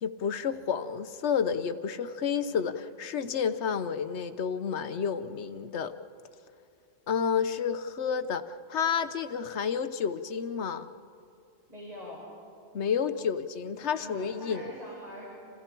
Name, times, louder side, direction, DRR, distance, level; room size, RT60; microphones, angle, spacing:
voice 1, 0.0-5.9 7.1-8.4 8.7-10.9 12.7-14.7, left 7 dB, 85° left, 11 dB, 1.2 m, -30 dB
voice 2, 11.7-12.3 13.9-15.3, equal, 35° right, -5 dB, 5.0 m, -43 dB
30.0 x 28.0 x 4.6 m, 2.6 s
omnidirectional pair, 1.1 m